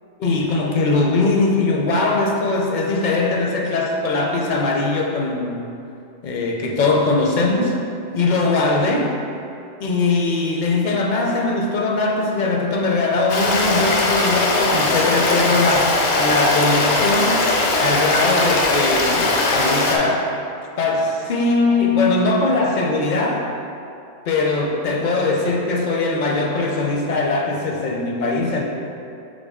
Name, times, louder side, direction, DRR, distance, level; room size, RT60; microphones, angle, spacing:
voice 1, 0.2-5.7 6.2-7.8 8.1-9.1 9.8-15.9 16.2-17.4 17.8-20.3 20.8-23.5 24.3-28.6, left 3 dB, 55° left, 0 dB, 0.5 m, -20 dB
Stream, 13.3-20.0, left 2 dB, 80° left, 0.9 m, -19 dB
3.9 x 3.5 x 3.5 m, 2.6 s
omnidirectional pair, 1.1 m